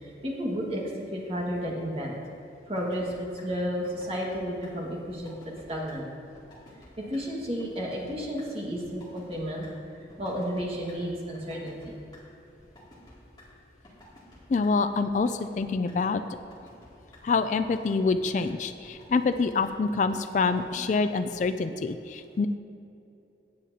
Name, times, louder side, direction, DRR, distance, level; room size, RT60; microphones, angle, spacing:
voice 1, 0.0-0.8 1.1-2.1 2.7-5.3 5.7-6.1 7.0-9.7 10.2-12.0, equal, 35° right, -3 dB, 1.7 m, -32 dB
sound 1, 2.8-3.1 3.4-3.5 3.8-4.4 4.6-4.7 5.1-5.6 5.9-6.0 6.3-6.9 7.1-7.2 7.6-8.1 8.4-8.5 8.8-9.4 9.6-9.7 10.1-10.9 11.3-12.2 12.6-13.4 13.8-14.4 14.6-14.7 15.1-15.6 15.9-16.0 16.3-16.9 17.1-17.2 17.6-18.1 18.4-18.5 18.8-19.4 19.6-19.7 20.1-20.6 20.9-21.0 21.3-21.4, left 2 dB, 25° left, 2.4 m, -52 dB
voice 2, 14.5-16.2 17.2-22.5, left 4 dB, 45° left, 10 dB, 0.3 m, -26 dB
16.5 x 8.2 x 2.8 m, 2.8 s
head